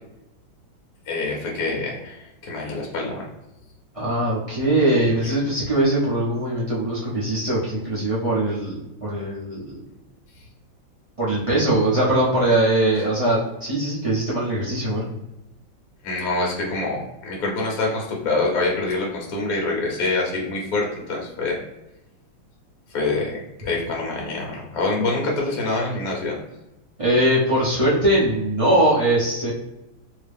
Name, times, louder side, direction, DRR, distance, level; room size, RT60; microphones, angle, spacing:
voice 1, 1.1-3.2 5.2-5.3 16.0-21.6 22.9-26.3, left 3 dB, 60° left, -2 dB, 1.1 m, -25 dB
voice 2, 3.9-9.8 11.2-15.1 27.0-29.5, right 1 dB, 45° right, -8 dB, 0.4 m, -21 dB
2.9 x 2.8 x 3.4 m, 0.92 s
omnidirectional pair, 2.1 m